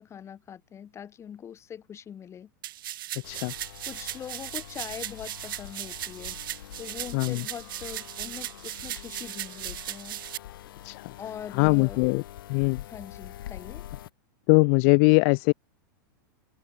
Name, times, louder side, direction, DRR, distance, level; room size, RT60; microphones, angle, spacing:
voice 1, 0.0-2.5 3.8-6.4 6.8-10.2 11.2-12.0 12.8-13.8, left 8 dB, 25° left, 3.3 m, -42 dB
sound 1, 2.6-10.4, right 13 dB, 75° right, 5.2 m, -37 dB
sound 2, 3.2-14.1, left 13 dB, 75° left, 3.4 m, -45 dB
voice 2, 11.6-12.2 12.5-12.8 14.5-15.5, left 37 dB, 50° left, 0.4 m, -21 dB
hypercardioid pair, 125°, 11 cm